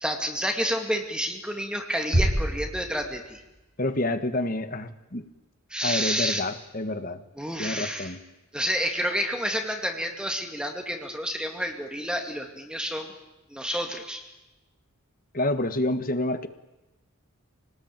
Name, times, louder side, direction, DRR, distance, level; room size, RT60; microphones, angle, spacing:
voice 1, 0.0-3.4 5.7-6.4 7.4-8.1 8.5-13.1 13.5-14.2, equal, 5° right, 4 dB, 2.1 m, -29 dB
sound 1, 2.1-3.8, right 1 dB, 55° right, 7.9 m, -27 dB
voice 2, 3.8-5.3 5.8-7.2 7.6-8.2 15.3-16.5, left 1 dB, 40° left, 10 dB, 1.5 m, -28 dB
25.5 x 19.0 x 9.0 m, 1.0 s
head